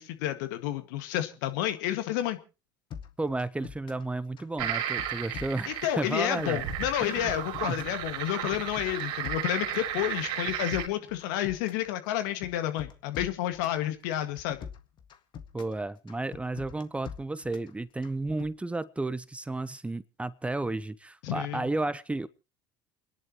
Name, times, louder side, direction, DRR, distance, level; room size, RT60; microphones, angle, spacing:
voice 1, 0.0-2.4 5.7-14.6 21.2-21.7, left 13 dB, 75° left, 1.9 m, -30 dB
sound 1, 2.9-4.1 4.4-6.0 6.3-8.0 8.3-9.9 10.2-11.9 12.2-13.8 14.1-15.8 16.1-17.7 18.0-18.5, left 8 dB, 50° left, 1.8 m, -43 dB
voice 2, 3.2-6.7 7.0-7.3 7.7-7.8 8.6-8.7 15.5-22.3, right 2 dB, 10° right, 0.7 m, -33 dB
sound 2, 4.6-10.9, right 10 dB, 70° right, 3.3 m, -34 dB
29.0 x 11.0 x 3.0 m
hypercardioid pair, 75°, 10 cm